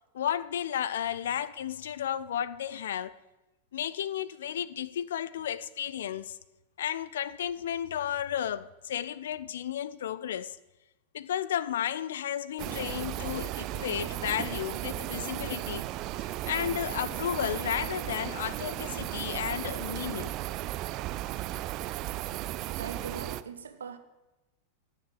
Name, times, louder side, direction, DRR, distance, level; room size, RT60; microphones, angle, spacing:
voice 1, 0.1-3.1 3.7-6.4 6.8-10.6 11.1-15.9 16.5-20.3, left 10 dB, 60° left, 0.6 m, -33 dB
sound 1, 12.6-23.4, right 16 dB, 40° right, 0.6 m, -35 dB
voice 2, 22.8-24.0, right 6 dB, 70° right, 1.5 m, -40 dB
16.0 x 7.6 x 9.8 m
figure-of-eight pair, 90°, 0 cm